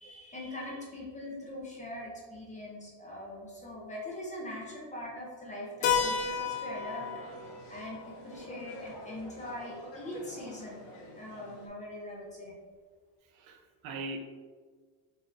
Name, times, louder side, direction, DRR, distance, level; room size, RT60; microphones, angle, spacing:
voice 1, 0.0-10.8 11.1-12.6, left 1 dB, 15° left, -5 dB, 0.5 m, -42 dB
Keyboard (musical), 5.8-10.3, left 6 dB, 90° left, 0.7 m, -34 dB
sound 1, 5.8-11.7, left 1 dB, 60° left, 0.9 m, -48 dB
voice 2, 13.3-14.2, right 3 dB, 75° right, 4 dB, 0.7 m, -40 dB
3.9 x 2.6 x 2.5 m, 1.5 s
cardioid pair, 145°, 50 cm